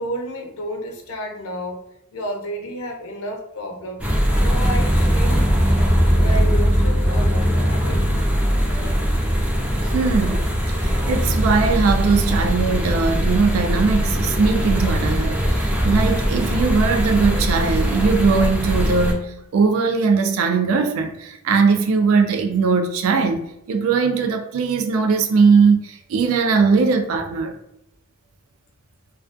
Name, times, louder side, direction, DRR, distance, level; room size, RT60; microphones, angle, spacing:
voice 1, 0.0-1.8 2.1-4.0 4.4-5.5 6.1-8.0, equal, 80° left, 0.6 m, -31 dB
sound 1, 4.0-19.1, equal, 5° right, 0.4 m, -20 dB
voice 2, 9.8-27.6, right 5 dB, 85° right, 0.3 m, -20 dB
2.3 x 2.3 x 2.4 m
head